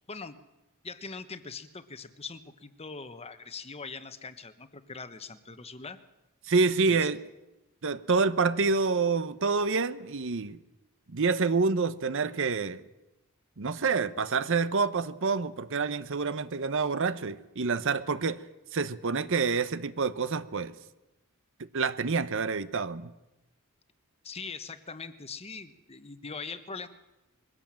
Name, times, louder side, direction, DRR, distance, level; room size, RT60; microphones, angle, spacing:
voice 1, 0.1-0.4 0.8-6.0 6.8-7.1 24.2-26.9, left 4 dB, 25° left, 11 dB, 1.0 m, -42 dB
voice 2, 6.4-7.2 7.8-10.6 11.1-12.8 13.6-18.4 18.7-20.7 21.7-23.1, right 4 dB, 60° right, 14 dB, 0.8 m, -27 dB
22.0 x 16.0 x 7.5 m, 1.0 s
head